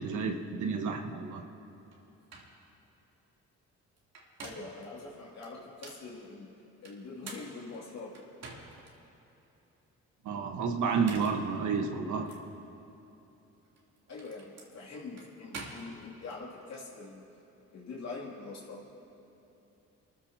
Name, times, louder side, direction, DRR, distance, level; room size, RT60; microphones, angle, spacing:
voice 1, 0.0-1.4 10.2-12.3, right 5 dB, 75° right, 4 dB, 1.4 m, -31 dB
sound 1, 1.9-2.0 2.3-2.6 4.0-4.8 5.4-6.1 6.8-8.9 9.4-9.5 10.8-11.5 12.3-12.4 13.6-16.4, right 3 dB, 60° right, 3.1 m, -47 dB
voice 2, 4.4-6.5 6.8-8.1 14.1-17.3 17.7-18.8, left 3 dB, 60° left, -5 dB, 2.7 m, -44 dB
29.0 x 15.0 x 2.9 m, 3.0 s
cardioid pair, 90°, 30 cm